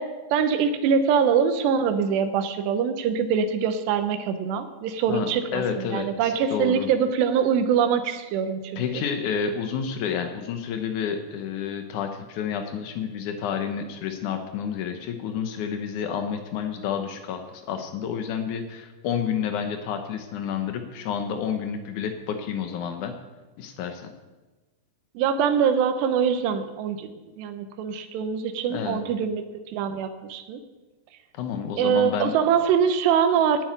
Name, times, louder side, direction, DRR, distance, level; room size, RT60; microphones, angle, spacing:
voice 1, 0.0-8.8 25.2-27.1 27.4-30.6 31.8-33.6, right 7 dB, 80° right, 9 dB, 3.0 m, -23 dB
voice 2, 5.1-6.9 8.8-23.1 23.6-24.1 28.7-29.0 31.3-32.3, left 7 dB, 85° left, 6 dB, 1.7 m, -30 dB
12.0 x 7.5 x 9.3 m, 1.2 s
omnidirectional pair, 5.0 m